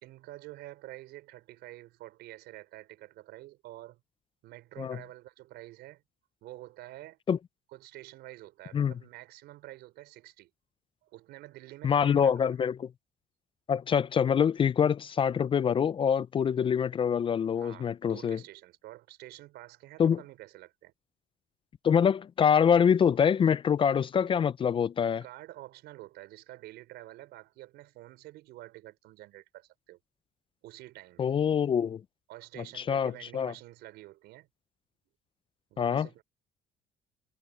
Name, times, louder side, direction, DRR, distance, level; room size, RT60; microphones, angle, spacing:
voice 1, 0.0-4.0 4.4-6.0 6.4-7.2 7.7-10.5 11.0-12.7 17.6-20.9 25.2-30.0 30.6-31.3 32.3-34.5 35.7-36.2, right 16 dB, 85° right, 5.0 m, -48 dB
voice 2, 11.8-12.9 13.7-18.4 20.0-20.2 21.8-25.2 31.2-32.0 32.7-33.5 35.8-36.1, left 7 dB, 30° left, 0.4 m, -25 dB
cardioid pair, 110°, 17 cm